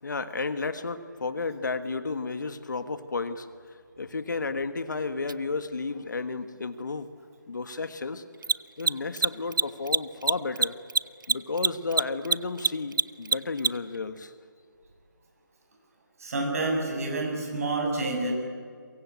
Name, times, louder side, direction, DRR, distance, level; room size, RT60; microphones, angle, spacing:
voice 1, 0.0-3.5 4.0-7.1 7.5-8.2 8.8-10.8 11.3-14.3, left 4 dB, 65° left, 11 dB, 1.5 m, -32 dB
Mechanisms, 5.3-5.4 8.3-14.0, right 4 dB, 75° right, 0.5 m, -25 dB
voice 2, 16.2-18.3, right 2 dB, 45° right, 0 dB, 7.3 m, -28 dB
23.0 x 22.0 x 8.4 m, 2.1 s
figure-of-eight pair, 160°, 11 cm